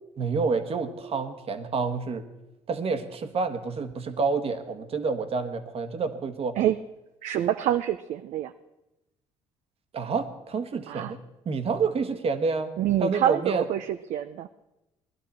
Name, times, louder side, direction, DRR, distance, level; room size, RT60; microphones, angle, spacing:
voice 1, 0.2-2.2 2.7-6.6 9.9-11.2 11.4-12.7 13.0-13.6, right 4 dB, 45° right, 8 dB, 1.3 m, -28 dB
voice 2, 7.2-8.5 10.9-11.2 12.8-14.5, right 11 dB, 60° right, 10 dB, 0.5 m, -26 dB
18.0 x 11.5 x 4.3 m, 0.97 s
hypercardioid pair, 60°, 13 cm